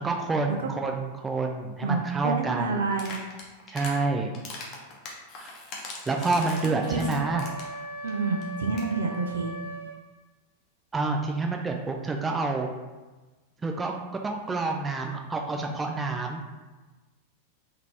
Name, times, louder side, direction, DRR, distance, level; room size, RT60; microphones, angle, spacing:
voice 1, 0.0-2.8 3.7-4.3 5.4-5.6 6.1-7.4 10.9-12.7 13.6-13.9 14.2-16.4, right 3 dB, 15° right, 2 dB, 0.4 m, -28 dB
voice 2, 1.8-3.2 6.6-7.1 8.0-9.5, right 4 dB, 65° right, 3 dB, 0.5 m, -28 dB
sound 1, 2.9-4.0 4.3-7.8 8.1-8.2 8.4-8.5 8.7-8.9, left 3 dB, 30° left, 0.9 m, -40 dB
Wind instrument woodwind instrument, 6.2-10.0, right 2 dB, 85° left, 0.8 m, -39 dB
3.9 x 2.7 x 3.3 m, 1.2 s
figure-of-eight pair, 90°, 0 cm